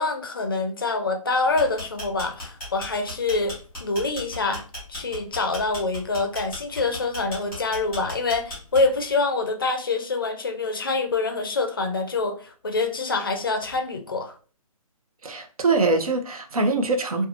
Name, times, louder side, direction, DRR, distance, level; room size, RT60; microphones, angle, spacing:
voice 1, 0.0-3.5 3.8-4.6 4.9-14.4, left 3 dB, 40° left, 0.4 m, -25 dB
sound 1, 1.4-9.1, left 1 dB, ahead, 1.2 m, -36 dB
voice 2, 15.2-17.3, right 3 dB, 75° right, 0.7 m, -23 dB
2.7 x 2.3 x 2.5 m
hypercardioid pair, 175°, 19 cm